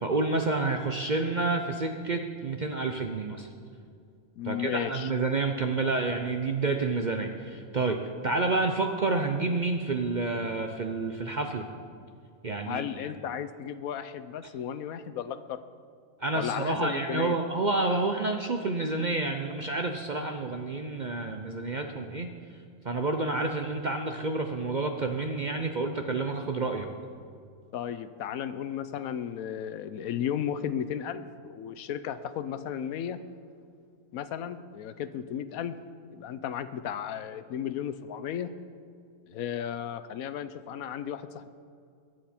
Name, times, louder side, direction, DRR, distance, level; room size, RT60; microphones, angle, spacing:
voice 1, 0.0-3.5 4.4-8.0 8.2-11.7 12.4-13.1 16.2-22.3 22.8-26.9, right 3 dB, 45° right, 4 dB, 0.6 m, -29 dB
voice 2, 4.4-5.1 12.7-15.6 16.3-17.4 27.7-33.2 34.1-35.8 36.1-38.5 39.3-41.5, left 9 dB, 75° left, 12 dB, 1.1 m, -34 dB
21.5 x 7.8 x 4.4 m, 2.3 s
omnidirectional pair, 1.5 m